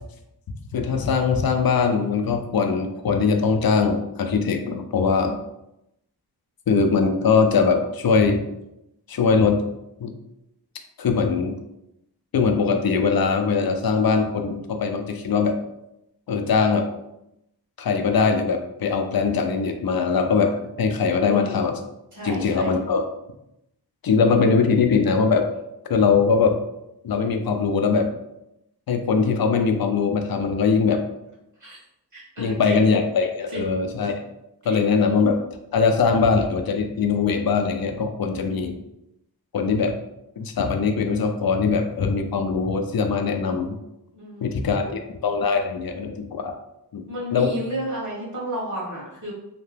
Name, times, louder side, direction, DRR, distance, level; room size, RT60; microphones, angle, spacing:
voice 1, 0.7-5.4 6.7-8.4 9.1-9.6 10.0-10.1 11.0-11.5 12.3-15.6 16.3-16.9 17.8-21.8 22.2-23.0 24.0-25.5 25.9-26.6 27.0-28.1 28.9-31.0 32.4-34.2 34.6-35.4 35.7-38.7 39.5-39.9 40.4-43.8 44.4-46.5 46.9-47.0 47.3-47.5, left 5 dB, 60° left, 5 dB, 0.5 m, -21 dB
voice 2, 21.2-21.6 22.1-22.7 31.6-31.8 32.1-32.9 33.5-33.7 34.7-35.0 38.3-38.8 44.1-44.9 47.1-49.3, equal, 45° right, -5 dB, 1.3 m, -32 dB
2.8 x 2.2 x 3.2 m, 0.86 s
wide cardioid pair, 75°, 40 cm